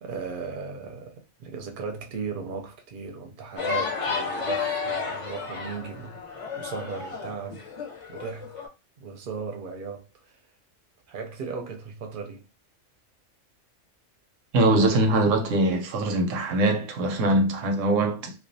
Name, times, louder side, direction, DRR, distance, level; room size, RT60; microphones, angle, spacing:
voice 1, 0.0-6.2 6.6-7.7 8.1-8.7 9.0-10.4 11.1-12.5, right 5 dB, 55° right, 0.6 m, -36 dB
sound 1, 3.6-8.7, left 5 dB, 35° left, 0.5 m, -32 dB
voice 2, 14.5-18.3, right 1 dB, 90° right, 1.0 m, -22 dB
2.3 x 2.2 x 2.6 m
omnidirectional pair, 1.3 m